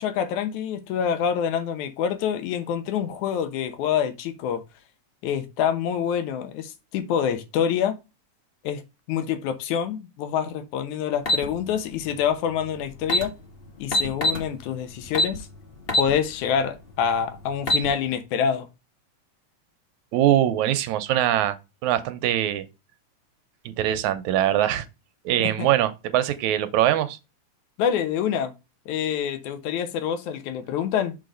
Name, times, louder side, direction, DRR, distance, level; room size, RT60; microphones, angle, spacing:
voice 1, 0.0-4.6 5.2-8.0 8.6-8.8 9.1-13.3 13.8-15.5 16.0-18.7 25.4-25.7 27.8-28.5 28.9-31.2, left 8 dB, 80° left, 2.4 m, -26 dB
sound 1, 11.2-11.4 12.7-12.8 13.0-13.3 13.9-14.4 15.1-15.4 15.9-16.1 16.5-16.6 17.4-17.9, equal, 45° left, 0.7 m, -21 dB
voice 2, 20.1-21.6 21.8-22.7 23.7-24.9 25.3-27.2, right 12 dB, 80° right, 2.1 m, -22 dB
6.5 x 3.9 x 5.1 m
omnidirectional pair, 3.4 m